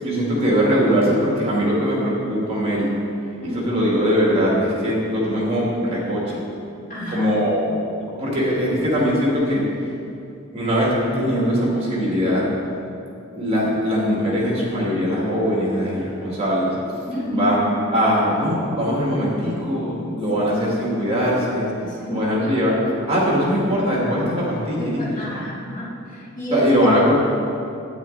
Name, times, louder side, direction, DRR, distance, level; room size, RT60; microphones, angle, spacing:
voice 1, 0.0-2.9 3.5-6.4 7.1-7.8 8.1-9.7 10.5-12.5 13.3-16.7 17.3-21.7 22.1-22.8 23.1-25.0 25.3-25.4 26.5-27.1, equal, 30° right, -4 dB, 2.0 m, -21 dB
voice 2, 3.4-3.8 6.9-7.3 17.1-17.5 20.4-20.5 20.8-21.1 21.7-22.4 24.7-26.9, equal, 40° left, -7 dB, 2.4 m, -30 dB
9.3 x 9.1 x 3.9 m, 2.6 s
head